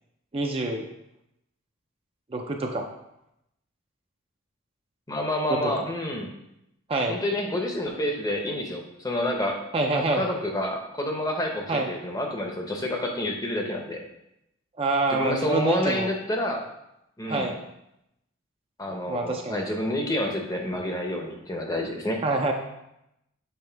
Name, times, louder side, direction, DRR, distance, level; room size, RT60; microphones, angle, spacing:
voice 1, 0.3-0.9 2.3-2.8 5.5-5.9 6.9-7.2 9.7-10.2 11.7-11.9 14.8-16.1 17.3-17.6 18.9-19.6 22.2-22.5, right 2 dB, 25° right, 2 dB, 0.4 m, -26 dB
voice 2, 5.1-6.3 7.1-9.6 10.1-14.0 15.1-16.7 17.2-17.5 18.8-22.2, left 1 dB, 20° left, 2 dB, 0.7 m, -28 dB
6.9 x 3.1 x 4.5 m, 0.84 s
head